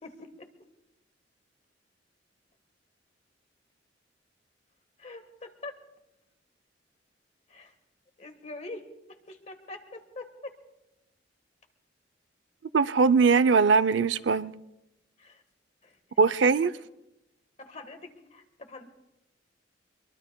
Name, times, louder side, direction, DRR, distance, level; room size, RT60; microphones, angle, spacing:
voice 1, 0.0-0.5 5.0-5.8 7.5-7.7 8.2-8.9 9.3-10.5 15.2-15.4 15.8-16.0 16.8-16.9 17.6-18.9, left 2 dB, 40° left, 7 dB, 1.5 m, -44 dB
voice 2, 12.7-14.6 16.2-16.7, right 5 dB, 85° right, 13 dB, 0.5 m, -21 dB
23.0 x 22.5 x 2.3 m, 0.89 s
head